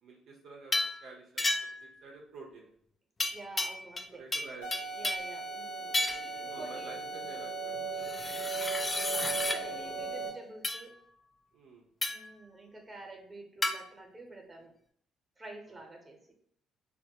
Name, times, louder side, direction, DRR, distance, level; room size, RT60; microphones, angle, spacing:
voice 1, 0.0-2.7 4.1-5.0 6.5-8.1 11.5-11.8, right 4 dB, 65° right, -1 dB, 0.4 m, -50 dB
sound 1, 0.7-1.0 1.4-1.9 3.2-4.1 4.3-5.3 5.9-6.3 8.0-9.6 10.6-10.8 12.0-12.3 13.6-13.8, left 2 dB, 30° left, 0.3 m, -32 dB
voice 2, 3.3-4.2 4.9-6.0 6.4-6.9 9.0-10.9 12.1-14.7 15.4-16.2, right 2 dB, 20° right, 2 dB, 0.8 m, -48 dB
sound 2, 4.4-10.3, right 5 dB, 65° left, 1.0 m, -40 dB
sound 3, 4.6-10.5, right 3 dB, 90° left, 0.7 m, -41 dB
2.2 x 2.0 x 2.8 m, 0.66 s
hypercardioid pair, 55°, 0 cm